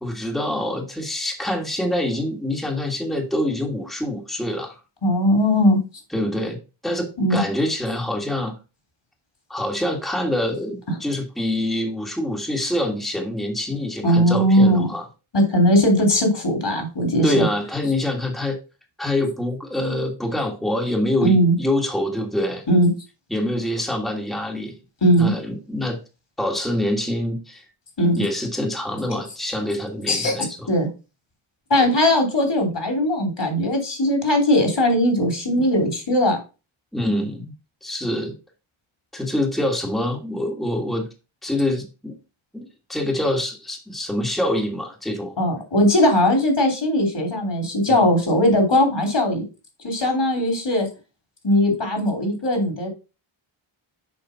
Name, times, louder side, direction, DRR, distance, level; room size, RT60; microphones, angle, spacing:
voice 1, 0.0-4.8 6.1-6.6 6.8-8.6 9.5-15.1 17.2-18.6 19.0-22.6 23.3-24.8 25.2-26.0 26.4-27.6 28.2-30.7 36.9-37.5 37.8-38.3 39.1-41.1 41.4-42.2 42.5-45.3 47.9-48.0, left 1 dB, ahead, 1 dB, 1.7 m, -25 dB
voice 2, 5.0-5.8 7.2-7.4 10.9-11.0 14.0-14.9 15.3-17.5 21.2-21.5 22.7-22.9 25.0-25.3 28.0-28.2 30.1-30.9 31.7-36.4 45.4-49.4 49.8-50.9 51.4-52.9, equal, 55° left, 4 dB, 3.1 m, -19 dB
7.2 x 4.8 x 5.7 m, 0.31 s
wide cardioid pair, 90°, 50 cm